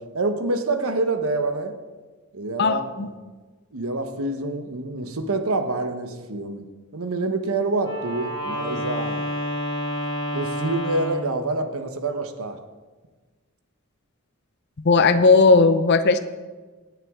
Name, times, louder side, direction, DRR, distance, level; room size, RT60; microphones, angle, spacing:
voice 1, 0.0-1.8 2.3-3.1 3.7-6.7 6.9-9.3 10.3-12.6, right 2 dB, 75° right, 7 dB, 1.1 m, -27 dB
voice 2, 2.6-3.1 14.8-16.2, left 4 dB, 50° left, 10 dB, 0.6 m, -16 dB
Wind instrument woodwind instrument, 7.8-11.3, equal, 20° left, 3.4 m, -29 dB
18.0 x 9.3 x 3.7 m, 1.3 s
head